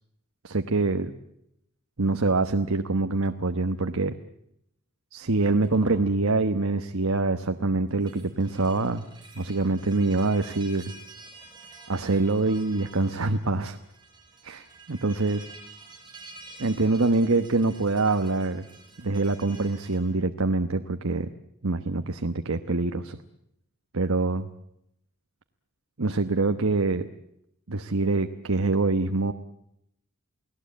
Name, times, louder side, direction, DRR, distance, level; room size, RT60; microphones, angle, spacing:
voice 1, 0.4-1.1 2.0-4.1 5.1-9.0 9.3-10.9 11.9-13.8 14.4-15.4 16.6-18.6 19.0-21.3 21.6-23.2 23.9-24.5 26.0-27.1 27.7-29.3, right 3 dB, 75° right, 7 dB, 1.1 m, -25 dB
sound 1, 5.2-6.1 7.9-20.0, right 2 dB, 20° right, 6.7 m, -48 dB
29.5 x 18.5 x 8.5 m, 0.79 s
head